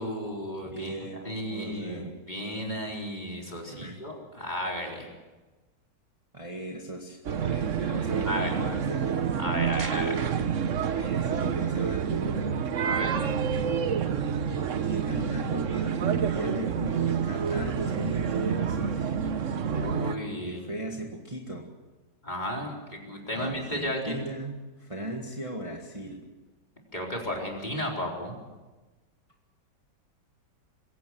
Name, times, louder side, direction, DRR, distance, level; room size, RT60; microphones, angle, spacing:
voice 1, 0.0-0.9 1.2-5.1 8.2-8.5 9.4-10.3 12.8-13.2 19.7-20.6 22.2-24.2 26.9-28.3, equal, 25° left, -1 dB, 4.4 m, -33 dB
voice 2, 0.7-2.2 3.7-4.0 6.3-9.1 10.9-12.4 14.3-14.4 14.8-19.1 20.4-21.7 23.1-26.2, right 1 dB, 20° right, 0 dB, 1.9 m, -37 dB
sound 1, 7.3-20.2, right 7 dB, 50° right, 1.2 m, -28 dB
22.0 x 16.5 x 7.7 m, 1.2 s
omnidirectional pair, 1.9 m